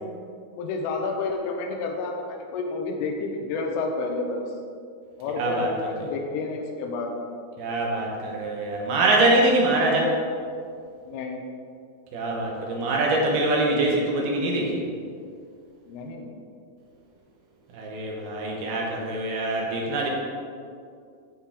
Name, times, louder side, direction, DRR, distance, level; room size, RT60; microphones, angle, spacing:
voice 1, 0.6-4.5 5.2-7.1 11.1-11.5 15.9-16.4, left 3 dB, 90° left, 2 dB, 3.3 m, -30 dB
voice 2, 5.3-5.7 6.0-6.1 7.6-10.2 12.1-14.8 17.7-20.1, right 2 dB, 70° right, -2 dB, 2.4 m, -24 dB
9.9 x 7.4 x 3.6 m, 2.3 s
omnidirectional pair, 5.7 m